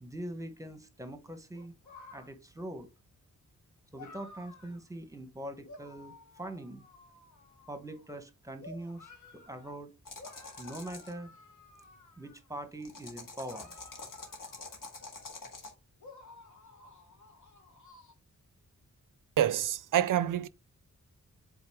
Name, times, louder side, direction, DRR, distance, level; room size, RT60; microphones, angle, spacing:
voice 1, 0.0-1.7 2.1-2.9 3.9-6.8 7.7-9.9 10.6-11.3 12.2-13.7 14.0-14.1, right 1 dB, 10° right, 0.9 m, -43 dB
sound 1, 1.5-2.3 3.9-4.8 5.6-8.2 8.6-9.7 10.2-12.6 13.4-15.3 16.0-18.1, left 3 dB, 65° left, 1.5 m, -54 dB
sound 2, 10.1-11.1 12.8-15.7, left 3 dB, 90° left, 1.8 m, -46 dB
voice 2, 19.4-20.5, right 11 dB, 75° right, 0.5 m, -27 dB
8.0 x 3.9 x 3.4 m
wide cardioid pair, 145°, 32 cm